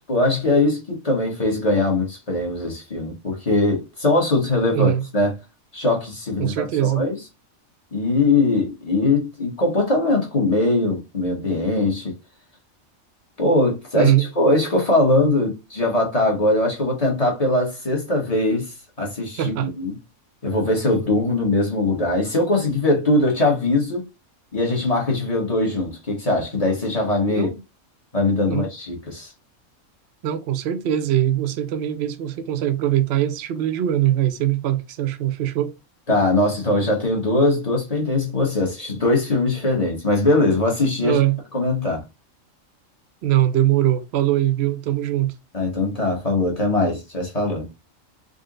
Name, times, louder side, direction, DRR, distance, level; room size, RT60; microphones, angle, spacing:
voice 1, 0.1-5.4 5.7-7.2 7.9-12.1 13.4-20.0 20.4-24.1 24.5-27.5 28.1-29.3 36.1-41.2 41.5-42.0 45.5-47.7, left 2 dB, 30° left, 1.0 m, -21 dB
voice 2, 4.7-5.0 6.4-7.0 13.9-14.2 19.4-19.7 27.3-27.6 28.5-28.7 30.2-35.7 41.0-41.4 43.2-45.3, right 12 dB, 65° right, 0.7 m, -21 dB
3.8 x 2.1 x 3.7 m
omnidirectional pair, 1.4 m